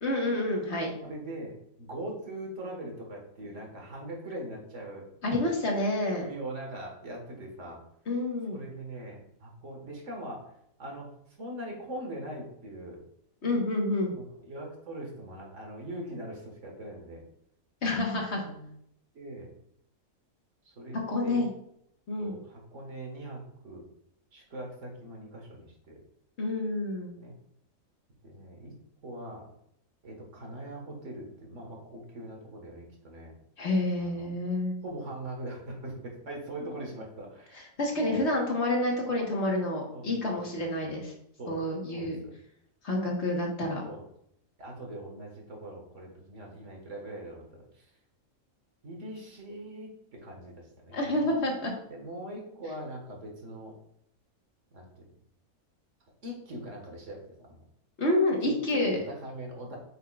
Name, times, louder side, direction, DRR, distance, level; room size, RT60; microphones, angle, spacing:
voice 1, 0.0-0.9 5.2-6.3 8.1-8.6 13.4-14.1 17.8-18.4 21.1-21.5 22.1-22.4 26.4-27.2 33.6-34.7 37.8-41.1 41.5-42.2 42.8-43.8 50.9-51.7 58.0-59.0, left 1 dB, 50° left, 0 dB, 1.6 m, -28 dB
voice 2, 1.0-5.1 6.2-7.8 8.5-10.5 10.8-11.1 11.4-13.0 14.2-17.2 17.9-18.0 18.4-18.8 19.1-19.5 20.7-21.5 22.2-23.8 24.3-26.0 27.2-27.4 28.2-28.7 29.0-29.4 30.0-33.3 34.0-34.3 34.8-37.6 38.0-38.3 39.9-41.0 41.4-41.6 41.9-42.4 43.9-44.1 44.6-47.9 48.8-51.3 51.9-53.7 54.7-55.1 56.2-57.6 58.4-59.8, right 1 dB, 60° right, 0 dB, 1.9 m, -41 dB
8.3 x 5.4 x 2.4 m, 0.72 s
omnidirectional pair, 1.5 m